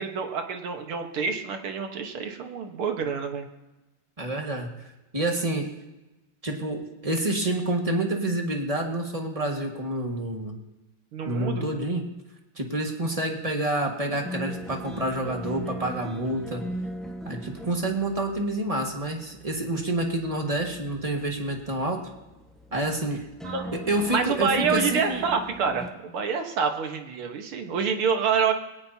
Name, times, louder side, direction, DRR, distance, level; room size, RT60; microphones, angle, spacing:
voice 1, 0.0-3.5 11.1-11.6 23.4-23.7 24.1-28.5, right 6 dB, 85° right, 4 dB, 2.3 m, -27 dB
voice 2, 4.2-4.7 5.1-5.7 6.4-10.6 11.3-12.0 12.6-16.6 17.2-22.0 22.7-23.2 23.7-25.2, right 1 dB, 20° right, 1 dB, 1.6 m, -28 dB
sound 1, 14.1-25.9, right 1 dB, ahead, 1.1 m, -39 dB
21.5 x 17.5 x 2.9 m, 1.0 s
omnidirectional pair, 2.3 m